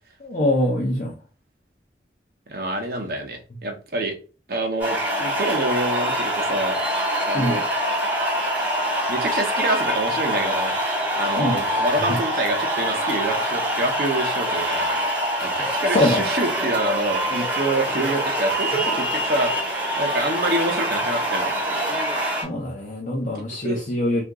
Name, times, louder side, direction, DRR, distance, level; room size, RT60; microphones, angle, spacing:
voice 1, 0.2-1.1 7.3-7.6 11.4-11.9 15.9-16.2 22.4-24.2, left 1 dB, 45° left, -3 dB, 0.6 m, -23 dB
voice 2, 2.5-4.1 4.5-6.8 7.3-7.7 9.1-10.7 11.2-15.0 15.4-21.5 23.6-23.8, right 1 dB, 55° right, 4 dB, 0.7 m, -26 dB
sound 1, 4.8-22.4, equal, 10° right, 1.6 m, -24 dB
2.8 x 2.5 x 3.5 m, 0.35 s
head